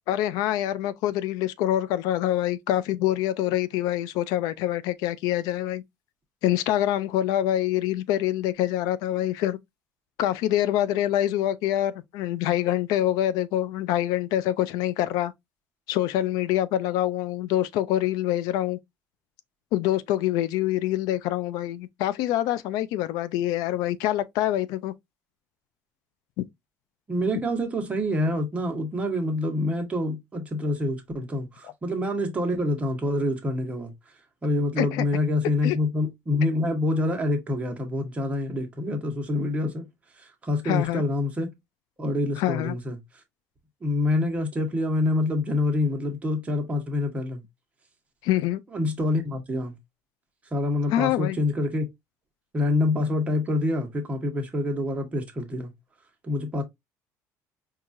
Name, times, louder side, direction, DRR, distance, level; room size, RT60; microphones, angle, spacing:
voice 1, 0.1-5.8 6.4-9.6 10.2-15.3 15.9-18.8 19.7-24.9 26.4-26.5 34.8-35.1 35.6-35.8 40.6-41.0 42.4-42.8 48.2-48.6 50.9-51.4, left 13 dB, 85° left, 0.3 m, -25 dB
voice 2, 27.1-33.9 34.4-39.9 40.2-41.5 42.0-43.0 43.8-47.4 48.7-49.7 50.5-51.8 52.5-55.7 56.2-56.6, left 2 dB, 20° right, 1.0 m, -26 dB
4.5 x 2.4 x 2.5 m
cardioid pair, 140°, 6 cm